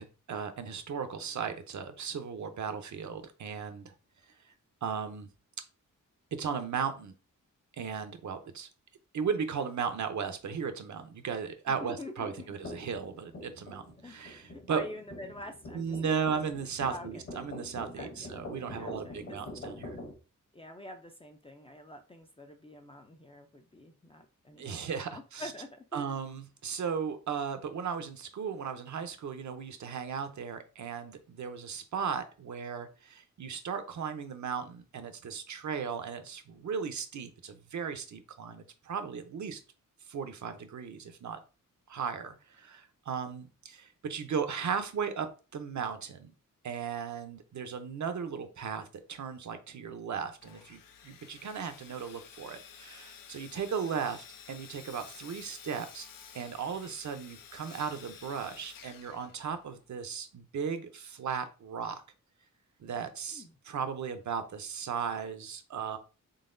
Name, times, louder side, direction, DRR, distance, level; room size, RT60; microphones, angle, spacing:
voice 1, 0.0-3.9 4.8-5.3 6.4-7.1 7.7-8.7 9.1-14.8 15.7-20.0 24.6-25.5 25.9-39.6 40.1-41.4 41.9-46.3 46.6-56.1 56.3-62.0 62.8-66.0, right 6 dB, 60° right, 9 dB, 0.6 m, -36 dB
voice 2, 11.7-12.5 14.0-14.2 14.5-16.4 16.9-17.2 18.0-18.3 18.8-19.4 20.5-26.2 63.3-63.5, left 1 dB, 20° left, 5 dB, 0.4 m, -46 dB
sound 1, 12.6-20.1, left 1 dB, 40° left, 1.0 m, -45 dB
Sawing, 50.4-59.9, left 7 dB, 80° left, 0.5 m, -52 dB
3.9 x 3.5 x 2.5 m, 0.34 s
wide cardioid pair, 160°, 33 cm